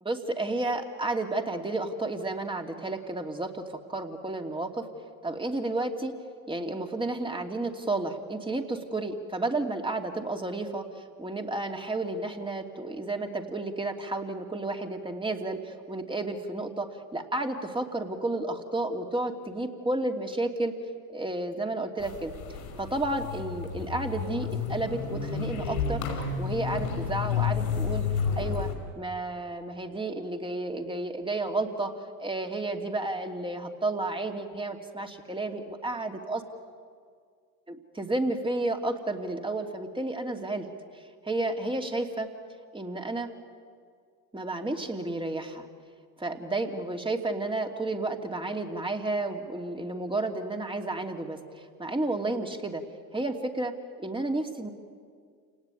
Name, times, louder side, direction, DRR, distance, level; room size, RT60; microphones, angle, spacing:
voice 1, 0.0-4.9 5.2-6.1 6.5-20.7 21.1-22.3 22.8-26.0 26.4-28.0 28.4-28.7 29.0-36.4 37.7-40.7 40.9-42.3 42.7-43.3 44.3-45.7 46.2-52.8 53.1-53.7 54.0-54.7, right 2 dB, 10° right, 3 dB, 2.9 m, -32 dB
sound 1, 22.0-28.8, left 6 dB, 85° left, 5.2 m, -31 dB
28.5 x 19.0 x 9.3 m, 2.1 s
hypercardioid pair, 70°, 42 cm